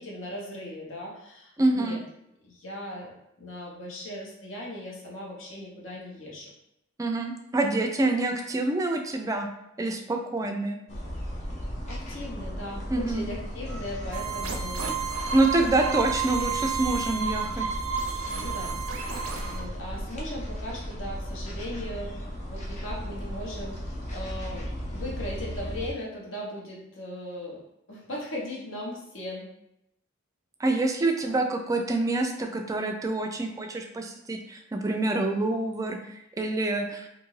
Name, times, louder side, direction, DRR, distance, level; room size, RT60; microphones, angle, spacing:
voice 1, 0.0-2.0 2.4-3.1 3.4-6.5 10.4-10.5 11.9-14.9 18.2-18.8 19.4-22.1 22.5-23.8 24.1-27.6 27.9-29.5 31.0-31.4, left 1 dB, 75° left, -3 dB, 0.9 m, -38 dB
voice 2, 1.6-2.0 7.0-9.5 9.8-10.8 12.9-13.3 15.3-17.7 30.6-36.0 36.4-37.1, right 2 dB, 15° right, 4 dB, 0.3 m, -26 dB
sound 1, 10.9-25.9, equal, 35° left, 0.5 m, -36 dB
sound 2, 14.1-19.6, right 6 dB, 85° right, 0.4 m, -31 dB
2.5 x 2.4 x 3.1 m, 0.81 s
head